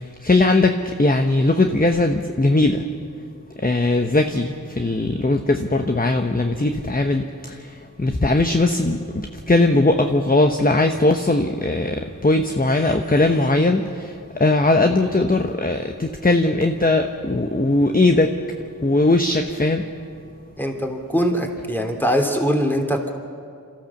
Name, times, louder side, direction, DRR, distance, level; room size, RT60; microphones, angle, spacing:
voice 1, 0.2-2.8 3.6-9.0 9.5-14.1 14.4-18.4 18.8-19.8, left 2 dB, 25° left, 5 dB, 1.0 m, -19 dB
voice 2, 20.6-23.1, equal, 5° left, 3 dB, 3.0 m, -22 dB
28.0 x 13.5 x 7.2 m, 2.3 s
wide cardioid pair, 45°, 35 cm